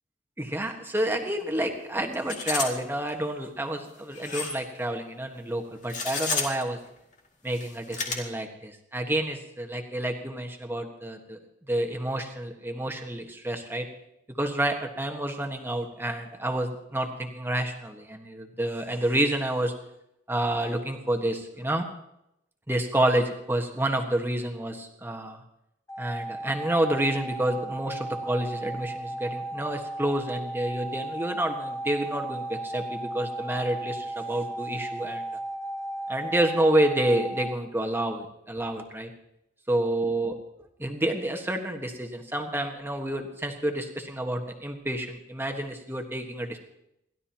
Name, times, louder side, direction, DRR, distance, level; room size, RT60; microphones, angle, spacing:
voice 1, 0.4-6.8 7.4-11.4 11.7-13.9 14.4-19.7 20.3-21.9 22.7-25.4 26.0-35.2 36.1-39.1 39.7-40.3 40.8-46.6, right 1 dB, 10° right, 3 dB, 1.5 m, -29 dB
sound 1, 1.0-1.1 1.4-1.5 2.1-2.7 3.1-3.2 4.1-4.6 5.8-6.6 7.5-8.1, left 4 dB, 40° left, 2.5 m, -31 dB
sound 2, 25.9-37.6, right 2 dB, 15° left, 1.3 m, -35 dB
29.5 x 12.5 x 3.0 m, 0.82 s
head